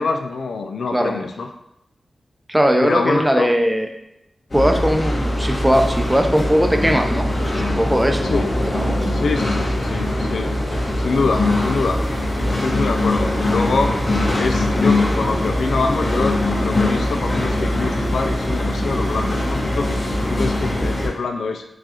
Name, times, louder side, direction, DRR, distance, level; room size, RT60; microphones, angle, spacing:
voice 1, 0.0-1.5 2.8-3.5 8.3-8.5 9.1-10.5 11.0-12.0 12.6-13.9 14.4-21.6, left 4 dB, 90° left, 5 dB, 0.3 m, -25 dB
voice 2, 2.5-3.9 4.5-9.0, equal, 10° right, 4 dB, 0.5 m, -19 dB
sound 1, 4.5-21.1, left 1 dB, 50° left, 1.4 m, -21 dB
4.7 x 2.4 x 2.8 m, 0.84 s
cardioid pair, 55°, 0 cm